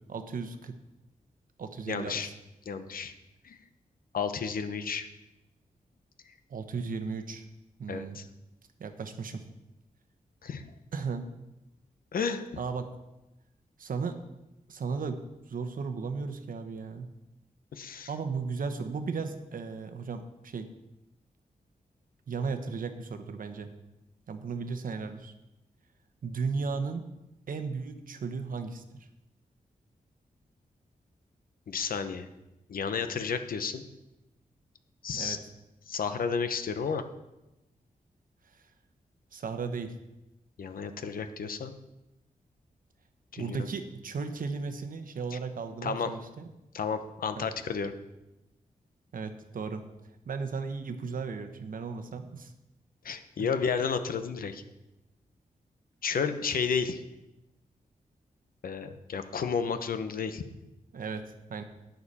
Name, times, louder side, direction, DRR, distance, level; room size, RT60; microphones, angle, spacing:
voice 1, 0.1-0.8 1.6-2.3 6.5-7.4 7.8-8.2 8.8-9.4 10.9-11.3 12.6-12.9 13.8-14.2 14.7-15.2 15.5-17.1 18.1-20.7 22.3-23.7 24.3-25.3 26.2-27.0 27.5-28.8 35.1-35.4 38.5-38.6 39.3-39.9 43.4-46.5 47.4-47.5 49.1-49.8 50.2-52.5 53.4-53.5 60.9-61.6, right 5 dB, 70° right, 8 dB, 1.1 m, -35 dB
voice 2, 1.9-2.3 2.7-3.1 3.4-3.6 4.1-5.1 7.9-8.3 10.4-10.6 12.1-12.4 17.7-18.1 31.7-32.3 32.7-33.8 35.0-35.4 35.9-37.0 40.6-41.7 43.3-43.7 45.3-45.4 45.8-46.1 46.7-47.9 53.0-54.6 56.0-57.0 58.6-60.4, left 6 dB, 75° left, 9 dB, 0.9 m, -32 dB
11.5 x 9.4 x 4.3 m, 0.96 s
wide cardioid pair, 95°, 15 cm